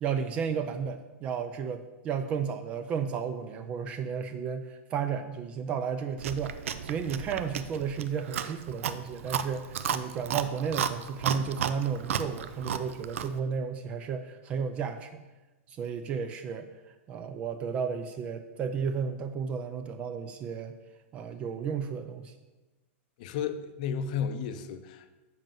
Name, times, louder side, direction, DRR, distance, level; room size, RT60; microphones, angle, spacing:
voice 1, 0.0-6.6 6.8-15.1 15.7-16.7 17.1-20.7 21.1-22.3, right 6 dB, 15° right, 9 dB, 0.3 m, -33 dB
Chewing mastication, 6.2-13.4, right 8 dB, 75° right, 0.6 m, -34 dB
voice 2, 23.2-25.1, left 7 dB, 35° left, 10 dB, 0.6 m, -33 dB
7.5 x 5.5 x 7.5 m, 1.1 s
supercardioid pair, 180°, 7 cm